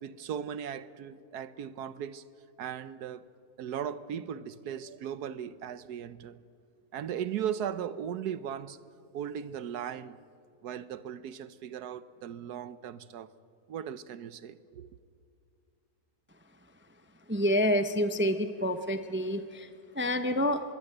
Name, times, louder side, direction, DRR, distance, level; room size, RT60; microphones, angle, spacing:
voice 1, 0.0-2.2 2.6-3.3 3.6-6.4 6.9-8.8 9.1-10.2 10.6-13.3 13.7-15.0, right 9 dB, 80° right, 1.3 m, -37 dB
voice 2, 17.3-20.6, equal, 10° right, 0.6 m, -28 dB
25.0 x 22.0 x 7.9 m
omnidirectional pair, 1.7 m